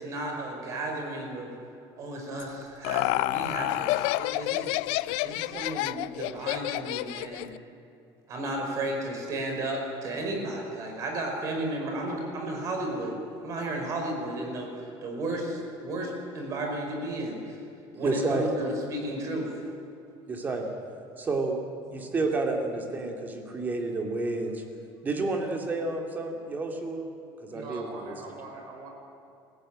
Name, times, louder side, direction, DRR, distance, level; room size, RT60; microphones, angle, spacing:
voice 1, 0.0-1.5 2.0-4.7 5.2-7.5 8.3-17.6 17.9-19.5 22.0-22.1, right 1 dB, 35° right, 2 dB, 4.7 m, -33 dB
Laughter, 2.4-7.6, left 18 dB, 90° left, 0.5 m, -29 dB
voice 2, 18.0-18.5 20.3-20.7 21.2-21.6 21.9-24.6 25.0-27.1 27.4-28.1, right 3 dB, 20° right, 3 dB, 2.5 m, -30 dB
voice 3, 27.5-28.9, right 4 dB, 55° right, 1 dB, 5.8 m, -42 dB
27.0 x 15.5 x 8.8 m, 2.6 s
cardioid pair, 180°, 9 cm